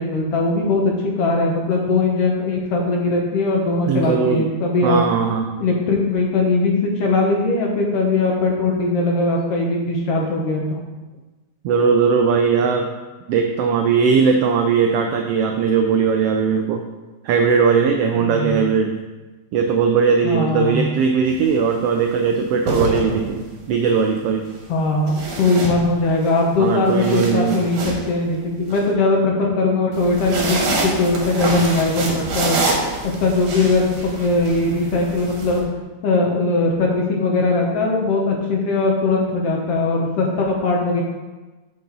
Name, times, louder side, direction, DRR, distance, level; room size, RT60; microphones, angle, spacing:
voice 1, 0.0-5.0 5.6-10.8 18.1-18.6 20.2-20.9 24.7-32.6 33.0-35.7 36.0-41.0, left 3 dB, 65° left, 0 dB, 1.8 m, -20 dB
voice 2, 3.9-4.5 4.8-5.5 11.6-12.9 13.3-16.8 17.2-18.9 19.5-24.5 26.6-27.6, right 6 dB, 90° right, 4 dB, 1.3 m, -19 dB
sound 1, 21.3-21.5 22.4-23.6 25.1-26.3 26.7-28.8 29.9-35.6, right 2 dB, 65° right, 2.4 m, -26 dB
6.9 x 6.9 x 3.9 m, 1.2 s
omnidirectional pair, 3.4 m